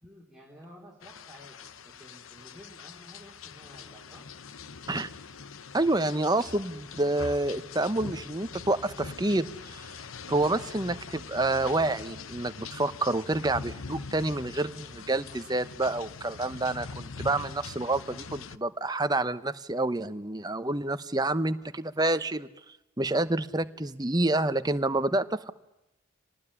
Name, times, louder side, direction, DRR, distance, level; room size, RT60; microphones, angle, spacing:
voice 1, 0.0-4.3, equal, ahead, -4 dB, 3.4 m, -52 dB
sound 1, 1.0-18.6, left 4 dB, 75° left, 0.9 m, -43 dB
voice 2, 5.7-9.8 10.3-22.5 23.0-25.5, right 2 dB, 20° right, 11 dB, 0.9 m, -28 dB
26.5 x 19.5 x 9.9 m, 0.94 s
head